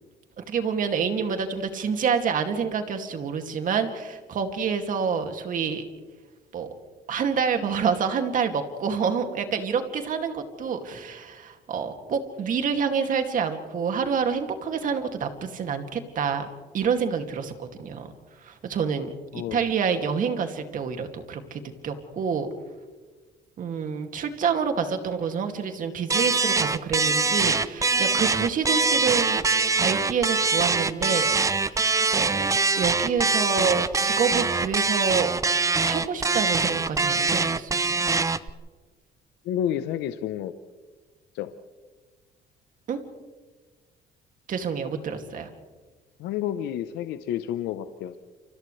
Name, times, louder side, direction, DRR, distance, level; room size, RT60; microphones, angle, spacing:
voice 1, 0.5-5.8 6.5-6.7 7.1-16.5 16.7-18.1 18.5-22.5 23.6-29.4 29.8-32.5 32.8-35.3 35.8-38.0 42.9-43.0 44.5-45.5, right 6 dB, 50° right, 5 dB, 2.5 m, -28 dB
sound 1, 26.1-38.5, right 4 dB, 20° right, 0.7 m, -23 dB
voice 2, 39.4-40.5 41.3-41.5 46.2-48.2, left 10 dB, 85° left, 10 dB, 0.9 m, -30 dB
30.0 x 26.0 x 3.3 m, 1.3 s
cardioid pair, 110°, 17 cm